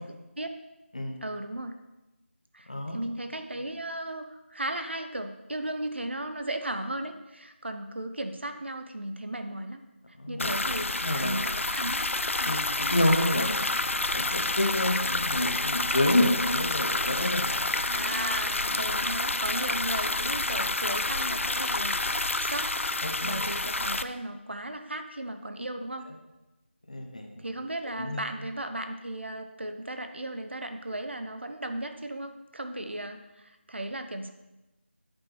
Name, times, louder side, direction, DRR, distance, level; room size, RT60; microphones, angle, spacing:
voice 1, 1.2-1.8 2.5-9.8 10.1-12.0 12.4-12.6 13.5-13.7 17.9-22.0 22.4-22.8 23.2-26.1 27.4-34.3, right 1 dB, 60° right, 7 dB, 0.8 m, -36 dB
voice 2, 2.7-3.0 10.2-10.5 11.0-11.3 12.5-17.9 18.7-18.9 20.2-20.3 23.0-23.5 26.9-27.4 28.0-28.3, left 1 dB, 35° left, 3 dB, 0.9 m, -29 dB
sound 1, 10.4-24.0, left 2 dB, 85° left, 0.4 m, -29 dB
8.6 x 4.6 x 4.6 m, 1.0 s
figure-of-eight pair, 180°, 7 cm